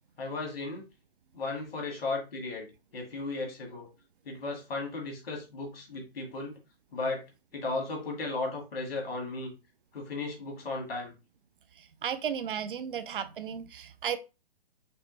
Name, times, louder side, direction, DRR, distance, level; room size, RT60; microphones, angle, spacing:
voice 1, 0.2-0.8 1.3-2.7 2.9-3.9 4.3-6.6 6.9-7.2 7.5-9.5 9.9-11.1, left 3 dB, 65° left, 2.0 m, -35 dB
voice 2, 11.8-14.2, right 8 dB, 55° right, 0.5 m, -34 dB
5.5 x 2.0 x 3.9 m
hypercardioid pair, 135°, 31 cm